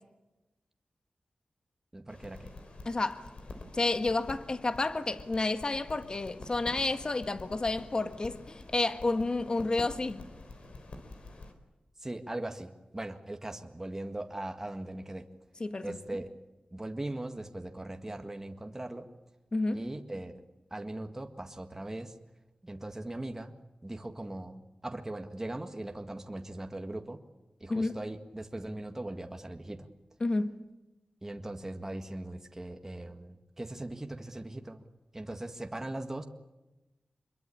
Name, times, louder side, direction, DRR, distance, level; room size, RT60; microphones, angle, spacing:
voice 1, 1.9-2.5 12.0-15.3 15.8-16.3 16.7-19.1 19.7-20.4 20.7-22.1 22.6-23.5 23.8-27.2 27.6-29.9 31.2-34.8 35.1-36.2, right 1 dB, 20° right, 1.8 m, -39 dB
sound 1, 2.1-11.5, left 2 dB, 60° left, 4.0 m, -47 dB
voice 2, 2.8-3.2 3.7-10.2 15.6-16.0 19.5-19.9 27.7-27.9 30.2-30.6, left 2 dB, 40° left, 1.5 m, -30 dB
25.5 x 22.5 x 8.6 m
wide cardioid pair, 95°, 2 cm